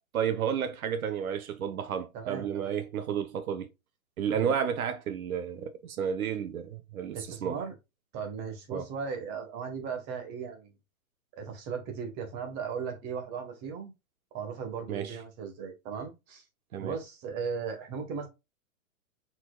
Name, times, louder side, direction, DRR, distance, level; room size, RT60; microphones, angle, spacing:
voice 1, 0.1-3.7 4.2-7.6 8.7-8.8 14.9-15.2 16.7-17.0, right 8 dB, 80° right, 1.0 m, -32 dB
voice 2, 2.1-2.7 4.3-4.5 7.1-7.7 8.1-10.7 11.4-13.9 14.3-16.4 16.8-18.3, right 6 dB, 25° right, 1.4 m, -37 dB
4.4 x 4.4 x 2.3 m
hypercardioid pair, 160°, 42 cm